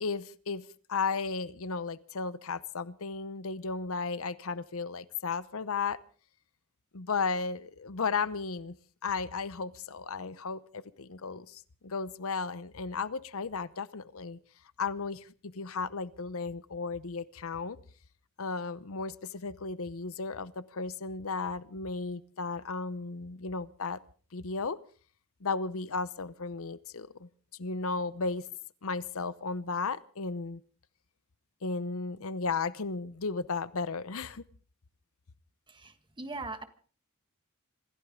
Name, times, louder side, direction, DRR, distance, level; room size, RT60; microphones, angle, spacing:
voice 1, 0.0-6.0 6.9-8.7 9.0-14.4 14.8-17.8 18.4-24.0 24.3-24.8 25.4-27.3 27.6-28.5 28.8-30.6 31.6-34.4, left 4 dB, 70° left, 15 dB, 0.8 m, -34 dB
voice 2, 35.7-36.6, right 3 dB, 20° right, 8 dB, 1.5 m, -40 dB
26.0 x 15.0 x 3.7 m, 0.41 s
head